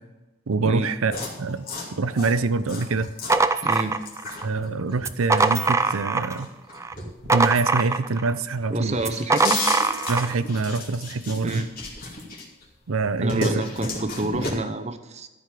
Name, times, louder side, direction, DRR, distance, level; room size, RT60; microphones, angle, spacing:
voice 1, 0.5-1.1 1.4-1.7 1.9-3.1 4.4-6.5 7.3-9.0 10.1-11.6 12.9-13.5, right 3 dB, 90° right, 14 dB, 0.6 m, -25 dB
sound 1, 1.1-8.2 8.6-12.6 13.0-14.5, left 3 dB, 45° left, 2.3 m, -34 dB
sound 2, 3.0-4.5 5.0-6.4 6.8-8.3 9.0-10.3, right 3 dB, 15° right, 0.3 m, -23 dB
voice 2, 3.6-4.0 8.7-9.6 11.4-11.7 13.2-15.3, right 2 dB, 30° right, 8 dB, 0.8 m, -28 dB
13.0 x 5.1 x 7.4 m, 1.1 s
head